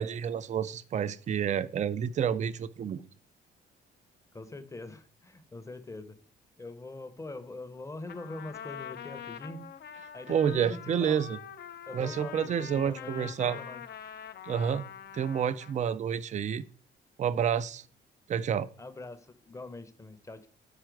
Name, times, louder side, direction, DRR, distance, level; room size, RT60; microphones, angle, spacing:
voice 1, 0.0-3.0 10.3-11.4 11.9-13.6 14.4-14.9 15.1-16.6 17.2-17.8 18.3-18.7, right 8 dB, 35° right, 0.4 m, -29 dB
voice 2, 4.3-6.2 6.6-9.7 10.1-11.2 11.9-13.8 18.8-20.5, left 2 dB, 15° left, 0.7 m, -43 dB
Trumpet, 8.1-15.9, left 9 dB, 55° left, 0.5 m, -44 dB
5.0 x 4.4 x 4.6 m
cardioid pair, 90°, 20 cm